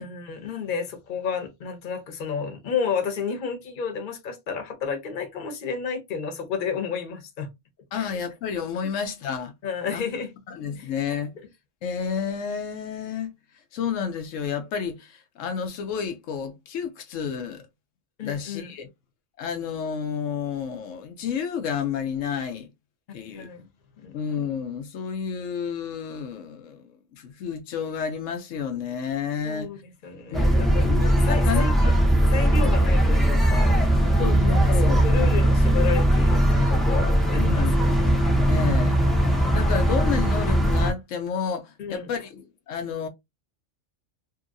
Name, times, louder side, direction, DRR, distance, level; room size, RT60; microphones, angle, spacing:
voice 1, 0.0-7.5 8.0-8.1 9.6-10.3 10.8-10.9 18.2-18.7 23.1-23.7 24.0-24.1 29.4-30.9 31.2-31.9 32.3-33.9 34.8-38.1 38.6-38.9 41.8-42.1, left 6 dB, 45° left, 0.9 m, -31 dB
voice 2, 7.9-9.5 9.9-10.0 10.5-11.3 11.8-13.3 13.7-17.6 18.2-18.9 19.4-22.7 23.1-23.5 24.1-29.7 30.3-31.9 32.6-32.7 34.2-35.0 37.4-37.7 38.0-38.2 38.5-39.0 39.5-43.1, left 7 dB, 80° left, 1.0 m, -30 dB
sound 1, 30.3-40.9, right 1 dB, ahead, 0.4 m, -20 dB
2.8 x 2.7 x 2.5 m
omnidirectional pair, 1.3 m